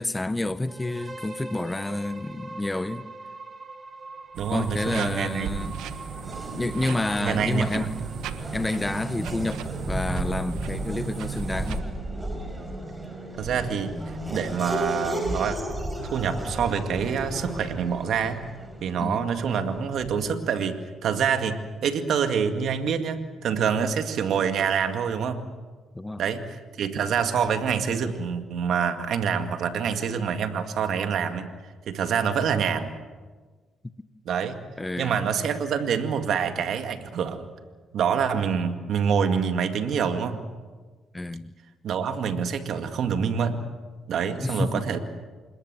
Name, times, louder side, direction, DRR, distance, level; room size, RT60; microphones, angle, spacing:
voice 1, 0.0-3.0 4.5-5.7 6.5-7.9 8.5-11.8 19.0-19.2 25.9-26.2 34.8-35.2 41.1-41.5 44.4-44.8, left 2 dB, 15° left, 0.9 m, -29 dB
sound 1, 0.7-8.5, right 3 dB, 30° right, 2.8 m, -43 dB
sound 2, 4.3-11.8, right 9 dB, 90° right, 1.3 m, -36 dB
voice 2, 4.4-5.6 7.2-8.0 13.4-15.6 16.0-18.4 18.8-25.4 26.2-31.5 31.9-33.0 34.3-34.6 35.0-37.5 37.9-40.4 41.8-43.6 44.1-45.0, right 7 dB, 70° right, 2.1 m, -26 dB
Race car auto racing / Accelerating revving vroom, 5.1-20.4, right 1 dB, 15° right, 5.4 m, -35 dB
26.5 x 21.5 x 7.7 m
cardioid pair, 90°, 0 cm